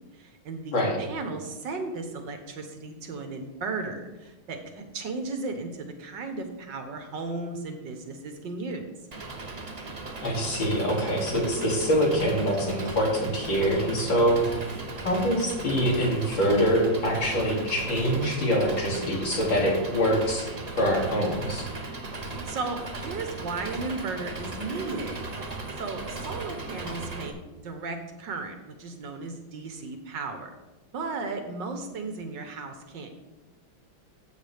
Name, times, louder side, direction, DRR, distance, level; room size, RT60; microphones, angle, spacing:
voice 1, 0.1-8.9 22.1-25.2 25.8-27.3 27.6-30.5 30.9-33.2, right 3 dB, 65° right, 6 dB, 1.6 m, -35 dB
Engine, 9.1-27.3, right 3 dB, 30° right, 0.7 m, -37 dB
voice 2, 10.2-14.6 15.0-20.5 20.8-21.7, equal, 65° left, -3 dB, 3.4 m, -24 dB
14.0 x 8.2 x 3.4 m, 1.1 s
omnidirectional pair, 2.3 m